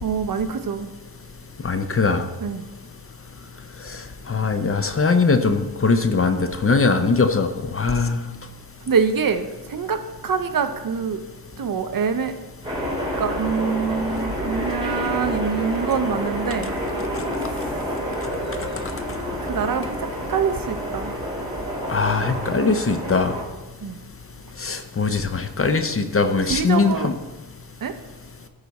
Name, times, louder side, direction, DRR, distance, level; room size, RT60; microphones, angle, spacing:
voice 1, 0.0-0.9 2.4-2.6 8.9-11.2 11.6-12.4 13.2-16.7 17.4-17.6 19.4-21.1 23.8-24.0 26.5-27.1 27.8-27.9, right 6 dB, 50° right, 9 dB, 0.6 m, -25 dB
voice 2, 1.6-2.2 4.3-8.3 21.9-23.3 24.6-27.1, left 4 dB, 30° left, 8 dB, 0.6 m, -21 dB
sound 1, 12.6-23.4, equal, 10° right, 2.9 m, -28 dB
13.0 x 4.8 x 4.1 m, 1.1 s
wide cardioid pair, 125°, 43 cm